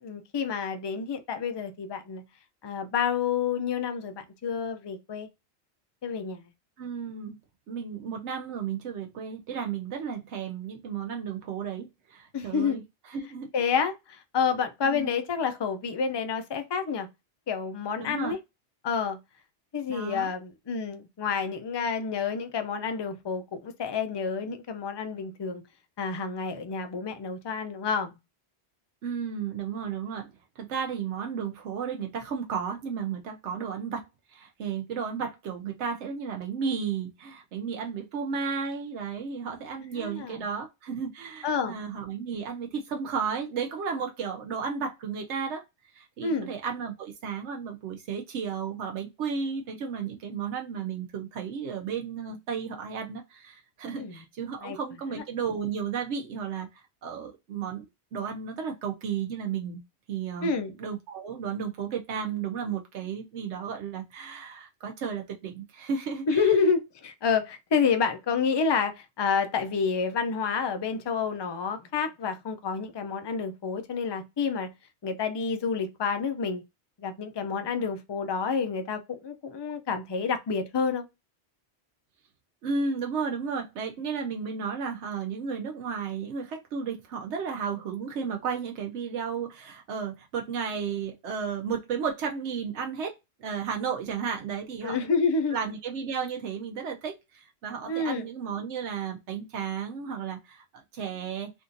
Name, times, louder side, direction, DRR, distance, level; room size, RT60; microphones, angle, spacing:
voice 1, 0.0-2.2 2.6-5.3 6.0-6.4 12.3-12.8 13.5-17.1 17.5-18.4 18.8-19.2 19.7-25.6 26.0-28.1 39.9-40.5 41.4-41.8 46.2-46.5 53.9-54.2 54.6-54.8 55.1-55.2 60.4-60.7 66.3-74.7 75.0-76.6 77.0-81.1 94.8-95.6 97.9-98.3, left 5 dB, 45° left, 0.3 m, -29 dB
voice 2, 6.8-7.3 7.7-12.8 13.1-13.7 14.8-15.1 18.0-18.4 19.9-20.3 29.0-57.8 58.1-59.8 60.1-60.5 60.8-66.5 82.6-95.1 95.5-100.6 100.9-101.5, right 6 dB, 85° right, 1.0 m, -33 dB
3.5 x 2.4 x 2.6 m
omnidirectional pair, 1.2 m